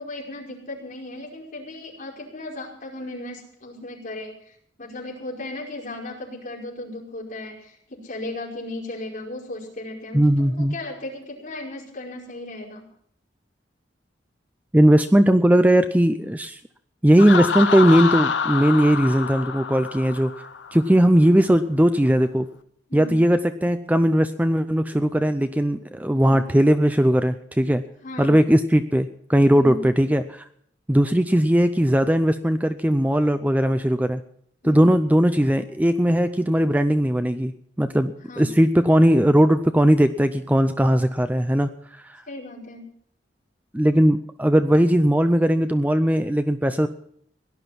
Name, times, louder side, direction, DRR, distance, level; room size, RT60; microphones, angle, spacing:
voice 1, 0.0-4.5 4.8-12.8 22.9-23.2 26.1-26.4 28.0-28.3 29.5-29.9 34.6-34.9 38.3-38.6 42.3-42.8, left 2 dB, 45° left, -3 dB, 5.2 m, -36 dB
voice 2, 10.1-10.7 14.7-16.6 17.0-20.4 20.7-22.5 22.9-27.8 28.2-30.4 30.9-34.2 34.6-37.5 37.8-41.7 42.0-42.2 43.7-46.9, equal, 10° right, 9 dB, 0.5 m, -18 dB
Laughter, 17.2-20.9, left 6 dB, 75° left, 0.8 m, -26 dB
17.5 x 11.5 x 5.9 m, 0.66 s
head